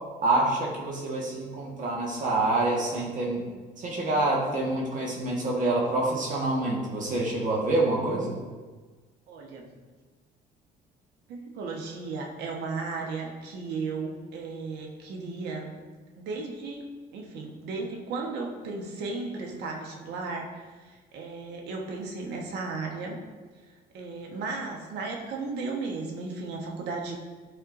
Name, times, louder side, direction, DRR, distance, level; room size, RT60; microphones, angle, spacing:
voice 1, 0.2-3.4 3.8-8.3, right 2 dB, 50° right, -3 dB, 1.5 m, -27 dB
voice 2, 9.3-9.7 11.3-15.7 16.2-16.9 17.1-23.2 23.9-27.2, right 3 dB, 80° right, 1 dB, 1.2 m, -35 dB
11.0 x 4.3 x 2.6 m, 1.4 s
cardioid pair, 110°, 17 cm